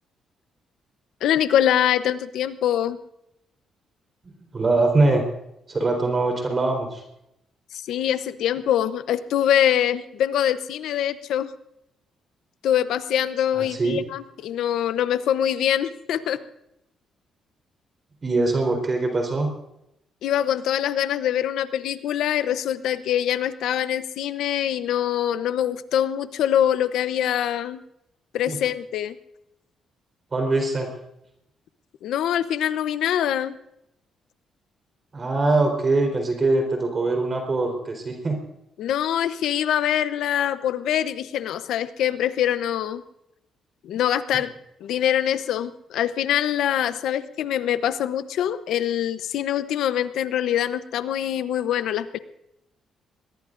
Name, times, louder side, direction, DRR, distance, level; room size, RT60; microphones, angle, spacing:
voice 1, 1.2-3.0 7.7-11.5 12.6-16.4 20.2-27.8 28.3-29.2 32.0-33.5 38.8-43.0 43.8-44.5 44.8-52.2, left 10 dB, 80° left, 12 dB, 0.8 m, -24 dB
voice 2, 4.5-5.2 5.7-7.0 13.6-14.0 18.2-19.5 28.5-28.6 30.3-30.9 35.1-38.4, right 2 dB, 35° right, 3 dB, 4.1 m, -22 dB
22.0 x 21.0 x 2.6 m, 0.82 s
cardioid pair, 90°, 0 cm